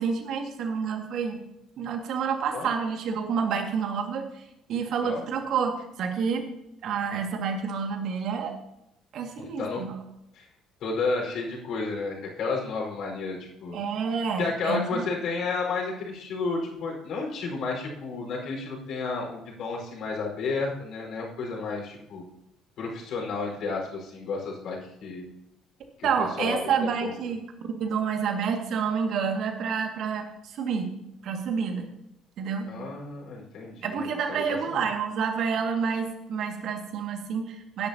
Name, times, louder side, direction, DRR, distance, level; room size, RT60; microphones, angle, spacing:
voice 1, 0.0-1.4 1.8-4.4 4.7-6.4 6.8-8.5 9.1-10.0 13.7-15.1 26.0-27.4 27.8-30.9 31.2-31.9 32.4-32.7 33.8-37.9, right 6 dB, 50° right, 4 dB, 2.1 m, -29 dB
voice 2, 9.4-9.8 10.3-10.4 10.8-13.8 14.4-22.2 22.8-25.3 26.0-27.1 32.7-34.8, left 4 dB, 50° left, -1 dB, 4.9 m, -32 dB
20.0 x 10.5 x 2.9 m, 0.86 s
figure-of-eight pair, 50°, 0 cm